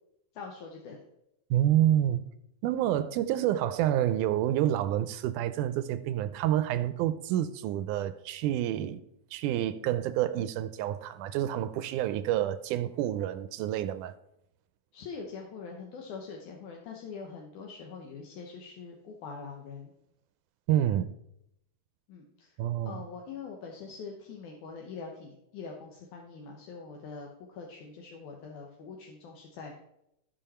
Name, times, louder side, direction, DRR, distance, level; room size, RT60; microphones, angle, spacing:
voice 1, 0.3-1.0 14.9-19.9 22.1-22.6 22.8-29.7, left 5 dB, 70° left, 2.5 m, -43 dB
voice 2, 1.5-2.2 2.6-9.0 9.3-14.2 20.7-21.1 22.6-23.0, right 12 dB, 80° right, 2.0 m, -28 dB
15.5 x 5.4 x 4.3 m
omnidirectional pair, 3.7 m